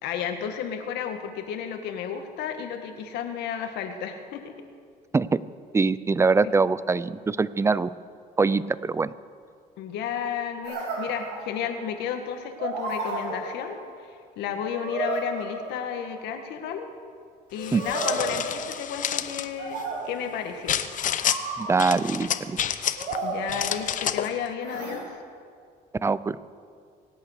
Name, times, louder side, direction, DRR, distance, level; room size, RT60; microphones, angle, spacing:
voice 1, 0.0-4.5 6.4-6.5 9.8-16.9 17.5-19.8 20.1-20.8 23.2-25.2, left 8 dB, 85° left, 6 dB, 1.7 m, -32 dB
voice 2, 5.7-7.9 8.4-9.1 17.7-17.8 21.6-22.6 26.0-26.4, right 4 dB, 15° right, 17 dB, 0.5 m, -23 dB
sound 1, 10.6-11.9 12.6-14.0 14.8-16.2 17.6-19.1 19.6-20.5 21.3-22.2 23.0-24.1 24.6-25.0, right 3 dB, 85° right, 3.6 m, -33 dB
sound 2, 17.6-19.5 20.7-21.4 21.8-23.2 23.5-24.3, left 9 dB, 50° left, 0.8 m, -29 dB
24.5 x 8.9 x 6.6 m, 2.2 s
cardioid pair, 110°, 17 cm